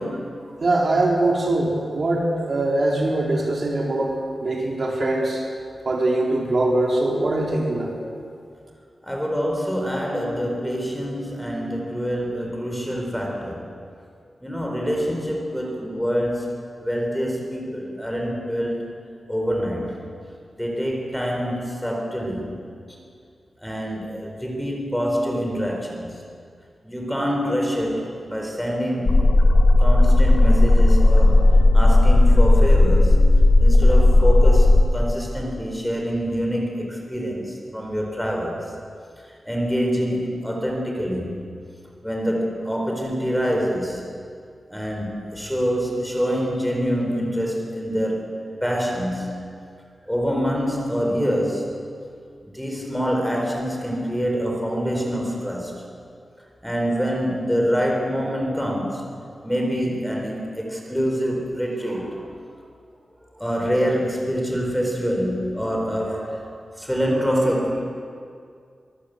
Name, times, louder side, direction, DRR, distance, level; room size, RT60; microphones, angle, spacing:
voice 1, 0.0-0.5 9.0-13.7 14.4-16.5 16.8-18.9 19.3-20.0 20.6-22.6 22.9-23.0 23.6-26.2 26.8-29.2 29.8-31.5 31.7-33.2 33.6-38.6 39.5-41.4 42.0-44.0 44.7-49.3 50.1-51.7 52.5-55.7 56.6-59.0 59.4-62.3 63.4-67.8, equal, 5° left, 0 dB, 4.2 m, -25 dB
voice 2, 0.6-5.4 5.9-7.9, right 2 dB, 45° right, -1 dB, 3.9 m, -22 dB
sound 1, 29.1-34.8, left 2 dB, 40° left, 2.1 m, -14 dB
23.5 x 20.5 x 8.2 m, 2.3 s
wide cardioid pair, 165°, 0 cm